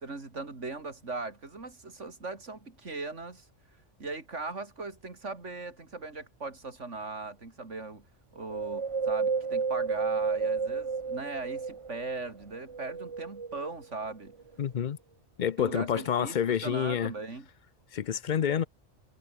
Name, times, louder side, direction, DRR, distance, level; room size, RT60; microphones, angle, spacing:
voice 1, 0.0-3.5 4.0-8.1 8.3-14.3 15.6-17.5, right 3 dB, 80° right, 3.6 m, -39 dB
Wind, 8.5-12.1 12.6-13.8 14.4-14.5, right 5 dB, 30° right, 0.8 m, -31 dB
voice 2, 14.6-15.0 15.4-17.1 17.9-18.6, left 8 dB, 50° left, 0.7 m, -28 dB
omnidirectional pair, 1.2 m